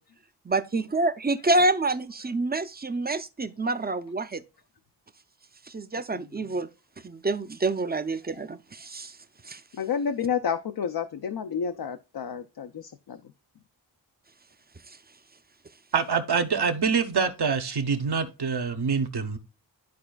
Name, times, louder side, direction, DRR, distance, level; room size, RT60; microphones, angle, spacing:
voice 1, 0.5-4.4 5.7-6.7 7.0-9.1 9.5-9.6, right 2 dB, 20° right, 0.6 m, -27 dB
voice 2, 6.1-6.5 8.3-8.4 9.7-13.3, left 7 dB, 55° left, 0.6 m, -31 dB
voice 3, 15.9-19.4, right 5 dB, 65° right, 1.1 m, -25 dB
12.0 x 4.3 x 2.3 m
wide cardioid pair, 65°, 44 cm